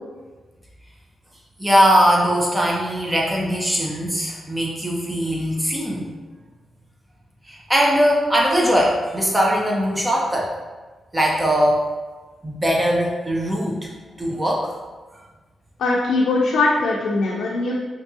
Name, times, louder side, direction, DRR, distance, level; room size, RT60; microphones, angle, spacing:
voice 1, 1.6-6.1 7.5-10.6 11.1-11.9 12.4-13.8 14.2-14.7, equal, 10° right, -2 dB, 0.4 m, -20 dB
voice 2, 15.8-17.7, left 3 dB, 85° left, -3 dB, 0.4 m, -20 dB
3.5 x 2.6 x 2.7 m, 1.3 s
wide cardioid pair, 135°, 0 cm